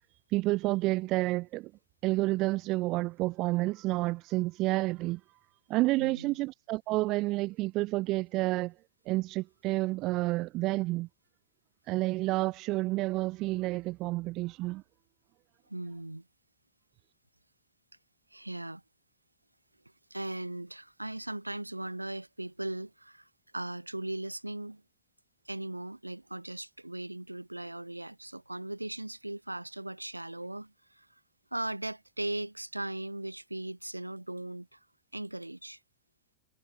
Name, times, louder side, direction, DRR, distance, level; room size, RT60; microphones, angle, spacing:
voice 1, 0.3-1.7 2.0-5.2 5.7-8.7 9.1-11.1 11.9-14.8, right 20 dB, 40° right, 0.8 m, -29 dB
voice 2, 6.0-6.4 15.7-16.3 18.3-18.8 20.1-24.8 25.5-31.1 31.5-34.8 35.1-35.8, right 1 dB, 85° right, 2.1 m, -38 dB
figure-of-eight pair, 90°, 0 cm